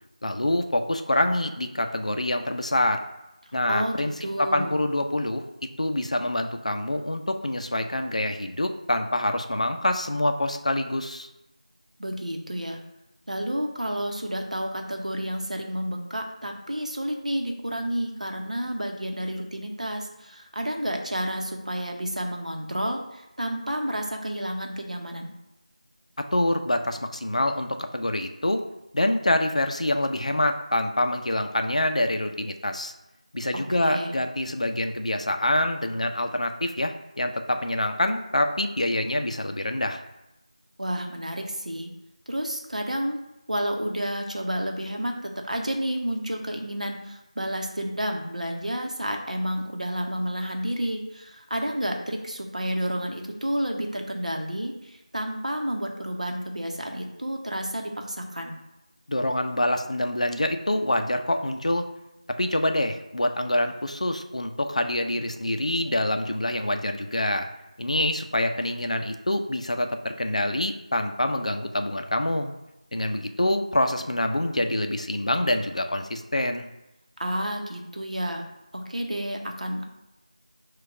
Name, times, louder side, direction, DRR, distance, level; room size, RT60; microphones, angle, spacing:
voice 1, 0.2-3.0 3.5-4.1 4.4-11.3 26.2-28.6 28.9-32.9 33.3-40.0 59.1-61.9 62.4-67.5 67.8-72.5 72.9-76.7, left 1 dB, 65° left, 6 dB, 0.4 m, -26 dB
voice 2, 4.2-4.8 12.0-12.8 13.3-25.3 33.7-34.2 40.8-41.9 42.3-43.2 43.5-58.5 77.2-78.4 78.7-79.8, equal, 75° right, 2 dB, 0.8 m, -30 dB
4.2 x 2.3 x 4.7 m, 0.93 s
figure-of-eight pair, 170°, 4 cm